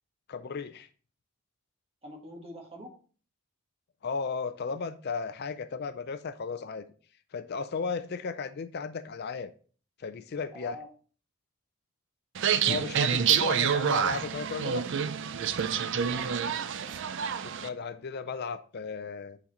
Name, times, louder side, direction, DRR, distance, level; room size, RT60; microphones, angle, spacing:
voice 1, 0.3-0.9 4.0-6.8 7.3-9.5 10.0-10.8 12.6-14.9 17.4-19.4, left 5 dB, 45° left, 0.4 m, -35 dB
voice 2, 2.0-3.0 10.5-10.9 12.7-12.9 16.1-17.0, equal, 25° right, 1.7 m, -46 dB
sound 1, 12.3-17.7, right 7 dB, 55° right, 0.4 m, -28 dB
8.6 x 4.0 x 4.2 m
head